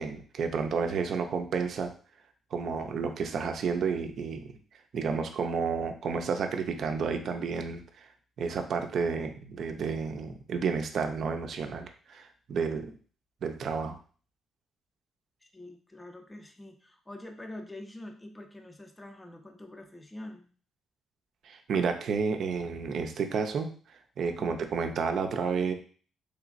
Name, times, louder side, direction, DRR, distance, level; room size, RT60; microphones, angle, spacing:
voice 1, 0.0-1.9 2.5-4.4 4.9-7.8 8.4-12.9 13.4-14.0 21.4-23.7 24.2-25.7, right 5 dB, 65° right, 6 dB, 0.5 m, -31 dB
voice 2, 15.5-20.5 24.4-24.6, left 1 dB, 15° left, 4 dB, 0.5 m, -45 dB
3.2 x 3.0 x 2.5 m, 0.42 s
cardioid pair, 90°, 0 cm